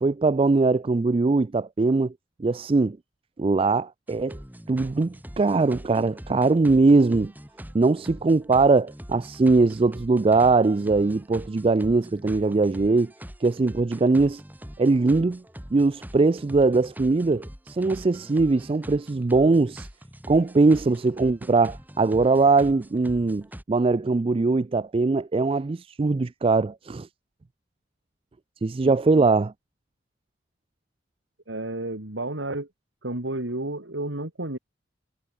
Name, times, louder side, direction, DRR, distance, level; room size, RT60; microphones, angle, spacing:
voice 1, 0.0-2.1 2.4-3.0 3.4-4.4 4.7-7.3 7.7-13.1 13.4-14.4 14.8-15.4 15.7-19.9 20.3-27.1 28.6-29.5, right 3 dB, 30° right, 0.4 m, -21 dB
sound 1, 4.1-23.6, equal, 10° right, 2.8 m, -43 dB
voice 2, 28.8-29.3 31.5-32.7 33.0-34.6, right 2 dB, 90° right, 3.1 m, -32 dB
head